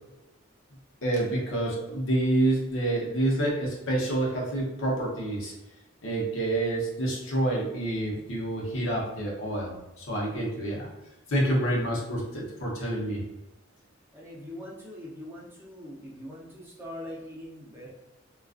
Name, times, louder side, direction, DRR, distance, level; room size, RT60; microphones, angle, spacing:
voice 1, 1.0-5.5 6.0-10.9 11.3-13.2, right 1 dB, 75° left, -3 dB, 0.7 m, -28 dB
voice 2, 14.1-17.9, left 1 dB, 10° right, -5 dB, 0.6 m, -42 dB
2.4 x 2.3 x 2.4 m, 0.98 s
head